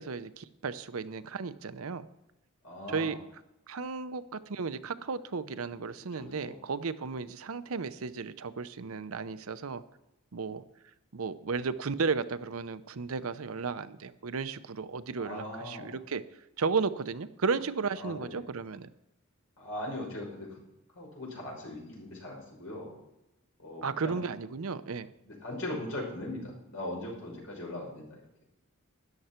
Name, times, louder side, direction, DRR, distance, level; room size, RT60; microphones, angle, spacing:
voice 1, 0.0-2.1 2.9-3.2 3.7-9.8 10.3-10.6 11.1-16.2 16.6-18.9 23.8-25.1, right 5 dB, 80° right, 13 dB, 0.7 m, -34 dB
voice 2, 2.6-3.2 6.1-6.6 15.2-16.0 18.0-18.4 19.6-20.6 20.9-22.9 23.6-24.2 25.2-28.2, left 1 dB, 80° left, -1 dB, 5.5 m, -40 dB
13.5 x 10.5 x 4.4 m, 0.89 s
head